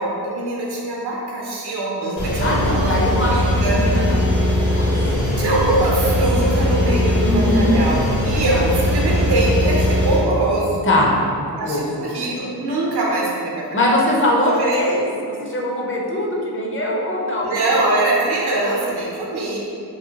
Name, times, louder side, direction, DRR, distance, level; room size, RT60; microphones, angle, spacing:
voice 1, 0.0-3.8 5.4-10.8 11.6-13.9 14.6-14.9 17.4-19.6, right 2 dB, 90° right, -4 dB, 0.7 m, -23 dB
sound 1, 2.2-10.2, left 1 dB, 65° left, 1.1 m, -19 dB
voice 2, 2.4-4.3 4.6-5.1 7.2-7.7 8.3-8.7 10.8-11.1 11.5-11.8 13.7-15.1 15.4-17.5, left 1 dB, 35° left, -3 dB, 0.5 m, -21 dB
2.7 x 2.2 x 2.7 m, 2.5 s
cardioid pair, 75°, 38 cm